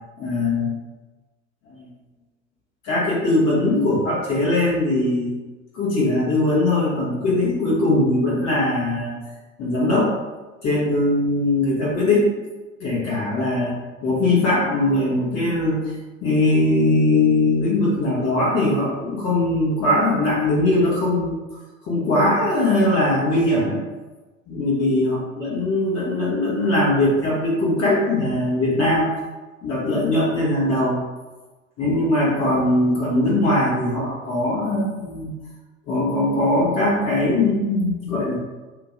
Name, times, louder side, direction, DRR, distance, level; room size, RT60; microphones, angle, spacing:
voice 1, 0.2-0.8 1.7-1.9 2.8-5.4 5.7-9.2 9.6-10.1 10.6-12.3 12.8-13.7 14.0-21.4 21.8-23.8 24.5-29.1 29.6-31.0 31.8-35.3 35.9-38.4, left 2 dB, 40° left, -6 dB, 1.4 m, -20 dB
2.9 x 2.7 x 3.7 m, 1.2 s
figure-of-eight pair, 75°, 40 cm